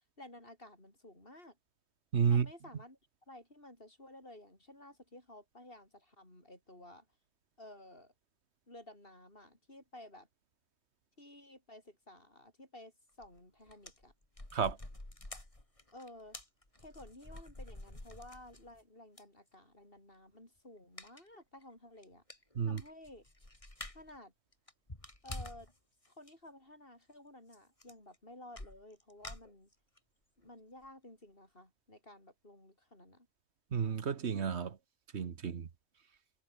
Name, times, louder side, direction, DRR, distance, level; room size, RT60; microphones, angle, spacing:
voice 1, 0.2-1.6 2.3-3.0 3.3-7.1 7.6-8.1 8.7-10.3 11.2-12.9 13.2-14.1 15.9-16.4 16.8-22.2 22.6-23.3 23.9-24.3 25.2-25.7 26.0-29.7 30.4-33.3, left 1 dB, 50° left, 7.2 m, -54 dB
voice 2, 2.1-2.5 14.5-14.8 22.5-22.8 33.7-34.8 35.1-35.7, right 7 dB, 70° right, 1.4 m, -31 dB
sound 1, 13.2-13.4 13.7-18.8 19.2-19.3 21.0-21.3 21.6-21.7 22.0-22.1 22.3-24.2 24.5-25.7 26.1-26.3 27.5-27.6 27.8-28.2 28.6-30.0 30.4-30.5 30.8-30.9, left 1 dB, 30° left, 3.9 m, -48 dB
omnidirectional pair, 1.2 m